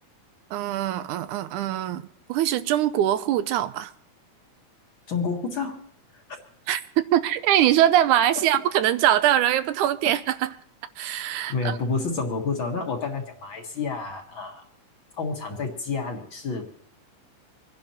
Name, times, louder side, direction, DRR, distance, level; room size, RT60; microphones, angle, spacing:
voice 1, 0.5-2.0 2.3-3.9 6.7-10.5 11.0-11.8, right 12 dB, 90° right, 2.2 m, -22 dB
voice 2, 5.1-5.8 6.1-6.4 8.4-8.5 11.5-14.6 15.2-16.7, left 4 dB, 45° left, 2.1 m, -29 dB
26.5 x 10.5 x 3.0 m
omnidirectional pair, 3.5 m